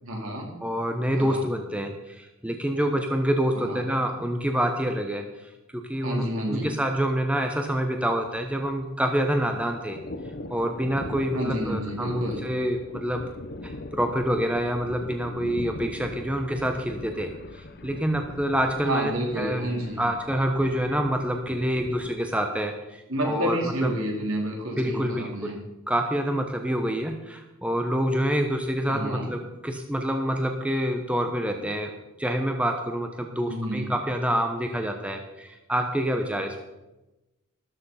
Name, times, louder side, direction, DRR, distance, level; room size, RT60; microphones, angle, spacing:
voice 1, 0.0-0.5 1.1-1.4 3.5-3.9 6.0-6.7 11.3-12.5 18.8-20.1 23.1-25.6 28.8-29.3 33.4-33.9, equal, 65° right, -1 dB, 4.4 m, -30 dB
voice 2, 0.6-5.3 5.7-10.0 10.5-13.2 13.6-17.3 17.8-19.6 20.0-23.9 24.8-25.6 25.9-31.9 32.2-36.6, equal, 5° right, 4 dB, 1.0 m, -27 dB
Thunder, 6.5-6.7 7.0-7.1 7.4-8.9 9.1-22.1, left 1 dB, 45° left, 1.1 m, -40 dB
13.5 x 13.0 x 5.7 m, 1.0 s
head